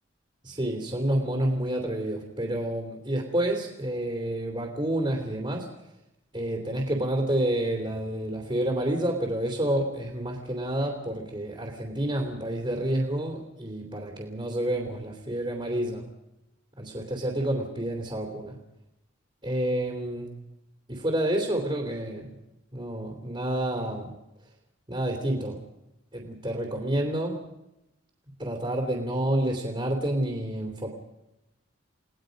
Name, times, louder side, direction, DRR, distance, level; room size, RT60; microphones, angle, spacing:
voice 1, 0.4-5.7 6.3-16.1 16.8-18.6 19.4-20.3 20.9-22.3 22.7-24.1 24.9-25.6 26.1-27.4 28.4-30.9, right 1 dB, 25° right, 1 dB, 3.0 m, -29 dB
29.5 x 19.0 x 5.2 m, 0.92 s
head